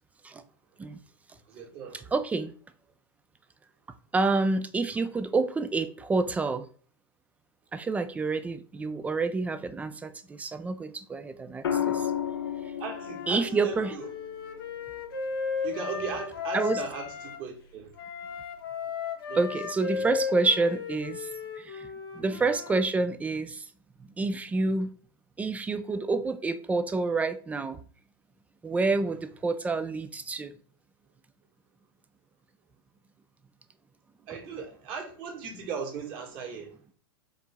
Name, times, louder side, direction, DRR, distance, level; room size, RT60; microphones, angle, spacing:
voice 1, 1.5-2.1 12.8-14.1 15.6-17.9 19.3-20.1 22.2-22.4 29.0-29.2 34.3-36.7, right 6 dB, 45° right, 1.7 m, -38 dB
voice 2, 2.1-2.5 4.1-6.7 7.7-12.1 13.3-13.9 16.5-16.8 19.3-21.3 21.6-21.9 22.1-23.7 24.2-24.9 25.4-27.8 28.6-30.5, right 3 dB, 10° right, 0.3 m, -28 dB
sound 1, 11.6-15.8 17.5-17.9, left 9 dB, 90° left, 0.5 m, -34 dB
Wind instrument woodwind instrument, 12.8-17.4 18.0-22.8, left 6 dB, 70° left, 1.0 m, -35 dB
4.8 x 2.7 x 3.5 m
hypercardioid pair, 120°, 13 cm